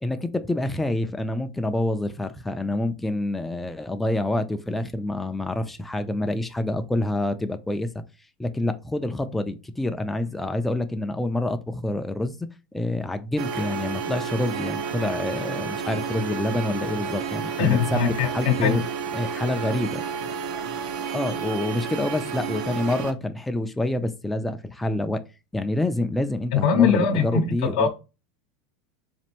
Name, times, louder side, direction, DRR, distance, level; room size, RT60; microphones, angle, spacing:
voice 1, 0.0-7.9 8.4-12.4 12.7-18.8 19.1-20.0 21.1-25.2 25.5-27.9, left 1 dB, 5° left, 0.3 m, -27 dB
sound 1, 13.4-23.1, right 6 dB, 70° right, 0.6 m, -31 dB
voice 2, 17.6-18.8 26.5-27.9, left 7 dB, 80° left, 0.7 m, -21 dB
4.2 x 2.5 x 2.8 m
supercardioid pair, 155°, 3 cm